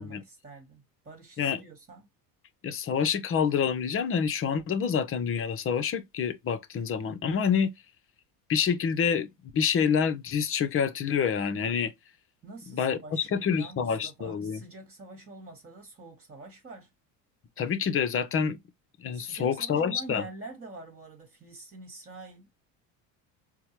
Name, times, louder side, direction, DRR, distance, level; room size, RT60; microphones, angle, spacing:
voice 1, 0.0-2.1 12.4-16.9 19.1-22.5, right 3 dB, 20° right, 1.4 m, -46 dB
voice 2, 2.6-7.8 8.5-11.9 12.7-14.6 17.6-18.6 19.0-20.3, left 7 dB, 35° left, 0.7 m, -27 dB
4.5 x 2.1 x 2.9 m
supercardioid pair, 110°, 39 cm